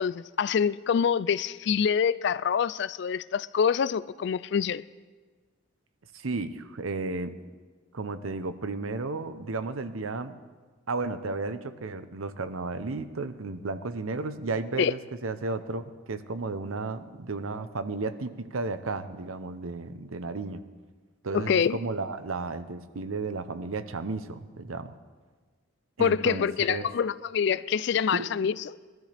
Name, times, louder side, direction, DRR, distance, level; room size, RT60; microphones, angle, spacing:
voice 1, 0.0-4.8 14.8-14.9 21.3-21.8 26.0-28.5, left 7 dB, 55° left, 0.3 m, -26 dB
voice 2, 6.1-7.3 7.9-10.4 10.9-20.6 21.2-24.9 26.0-26.9 28.1-28.3, right 3 dB, 85° right, 0.8 m, -33 dB
21.0 x 12.5 x 3.4 m
head